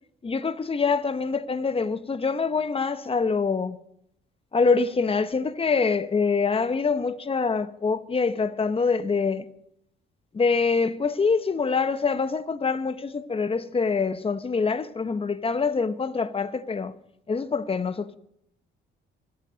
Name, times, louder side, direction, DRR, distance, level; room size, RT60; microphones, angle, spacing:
voice 1, 0.2-3.8 4.5-9.4 10.3-16.9 17.3-18.2, left 4 dB, 30° left, 1.1 m, -25 dB
26.0 x 8.9 x 5.2 m
cardioid pair, 90°, 20 cm